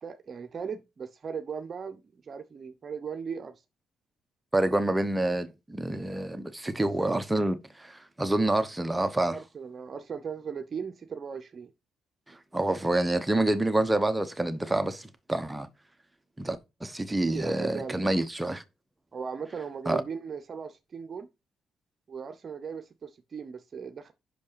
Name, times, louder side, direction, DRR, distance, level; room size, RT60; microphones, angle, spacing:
voice 1, 0.0-3.6 9.3-11.7 17.3-18.2 19.1-21.3 22.1-24.1, right 6 dB, 45° right, 0.8 m, -38 dB
voice 2, 4.5-9.4 12.3-15.7 16.4-18.6 19.9-20.0, right 1 dB, 10° right, 0.9 m, -27 dB
5.8 x 5.3 x 6.7 m
cardioid pair, 90°, 0 cm